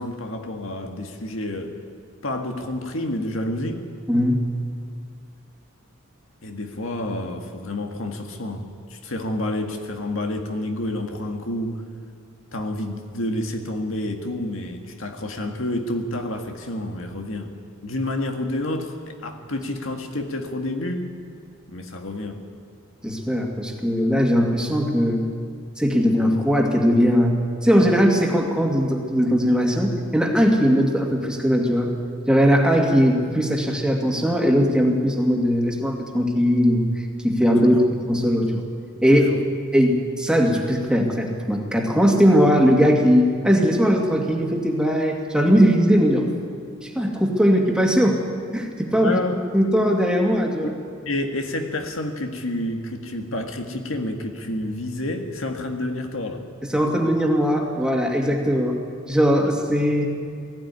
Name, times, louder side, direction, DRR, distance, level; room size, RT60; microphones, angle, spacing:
voice 1, 0.0-1.8 2.2-3.9 6.4-11.8 12.5-17.6 17.8-21.1 21.7-22.5 37.6-37.8 39.1-39.4 49.0-49.4 50.6-50.7 51.1-56.5, left 1 dB, 75° left, 4 dB, 1.8 m, -29 dB
voice 2, 4.1-4.4 23.0-25.3 25.8-32.0 32.3-36.9 37.2-37.8 38.1-38.6 39.0-39.2 39.7-46.3 46.8-48.2 48.5-49.2 49.5-50.7 56.7-58.8 59.1-60.1, equal, 5° right, 0 dB, 2.3 m, -19 dB
20.0 x 15.0 x 9.6 m, 2.2 s
head